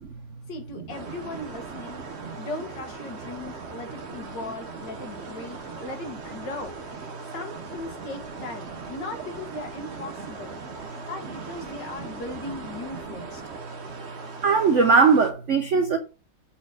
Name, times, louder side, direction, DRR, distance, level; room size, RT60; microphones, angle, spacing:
voice 1, 0.5-2.0 2.4-7.0 7.3-10.6 11.0-13.4, left 2 dB, 65° left, 2.1 m, -38 dB
sound 1, 0.9-15.3, right 3 dB, 45° right, 1.0 m, -40 dB
voice 2, 14.4-16.0, right 5 dB, 65° right, 0.7 m, -19 dB
7.6 x 4.3 x 4.9 m
omnidirectional pair, 2.1 m